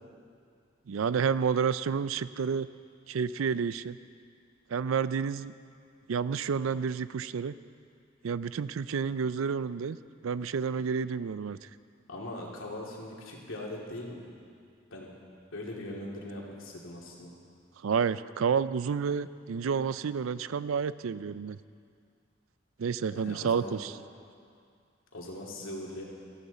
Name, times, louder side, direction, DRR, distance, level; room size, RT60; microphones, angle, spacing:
voice 1, 0.9-2.7 3.1-4.0 4.7-5.5 6.1-7.5 8.2-10.0 10.2-11.6 17.8-21.6 22.8-23.9, right 6 dB, 85° right, 16 dB, 0.4 m, -30 dB
voice 2, 12.1-14.3 14.9-15.1 15.5-17.3 23.1-23.8 25.1-26.0, left 1 dB, 75° left, -3 dB, 2.8 m, -40 dB
18.5 x 14.0 x 4.2 m, 2.3 s
head